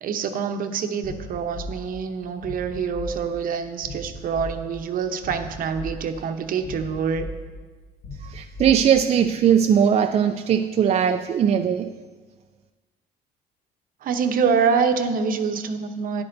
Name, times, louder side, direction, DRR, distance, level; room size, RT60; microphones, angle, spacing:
voice 1, 0.0-7.3 14.0-16.2, right 6 dB, 55° right, 7 dB, 0.8 m, -25 dB
sound 1, 1.0-9.3, left 1 dB, 65° left, 1.4 m, -38 dB
voice 2, 8.2-11.9, right 8 dB, 40° right, 6 dB, 0.4 m, -20 dB
12.0 x 10.5 x 2.6 m, 1.4 s
cardioid pair, 110°, 17 cm